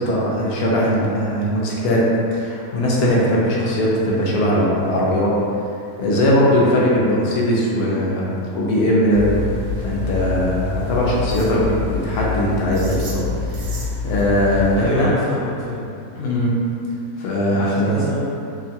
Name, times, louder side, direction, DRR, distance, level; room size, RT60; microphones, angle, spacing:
voice 1, 0.0-5.4 6.0-9.4 9.8-13.2 13.5-15.1 16.2-16.5 17.2-18.1, equal, 80° left, -5 dB, 1.1 m, -19 dB
sound 1, 9.1-14.9, left 4 dB, 75° right, 1.0 m, -26 dB
voice 2, 14.7-16.0 17.5-18.3, equal, 5° right, -14 dB, 0.7 m, -27 dB
3.0 x 2.3 x 2.6 m, 2.5 s
omnidirectional pair, 1.6 m